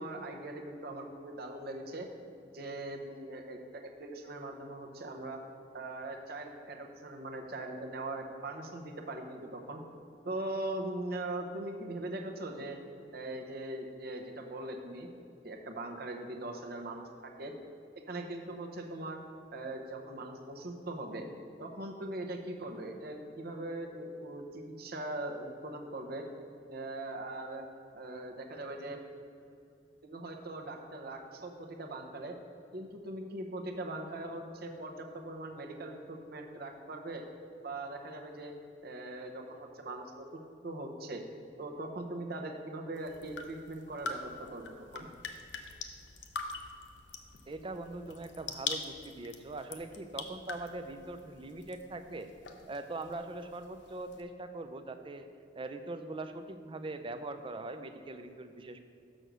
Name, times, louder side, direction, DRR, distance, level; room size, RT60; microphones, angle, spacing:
voice 1, 0.0-2.1 2.5-5.4 5.7-9.8 10.2-12.8 13.1-15.1 15.4-17.5 18.1-19.2 19.5-21.3 21.6-26.2 26.7-27.6 27.9-29.1 30.0-32.3 32.7-37.2 37.6-38.5 38.8-40.2 40.6-41.2 41.6-45.1, right 2 dB, 60° right, 3 dB, 0.9 m, -40 dB
sound 1, 42.9-54.2, left 5 dB, 80° left, 0.7 m, -44 dB
voice 2, 47.5-52.3 52.7-55.3 55.5-58.8, right 2 dB, 30° right, 8 dB, 0.5 m, -41 dB
6.7 x 6.4 x 6.2 m, 2.6 s
head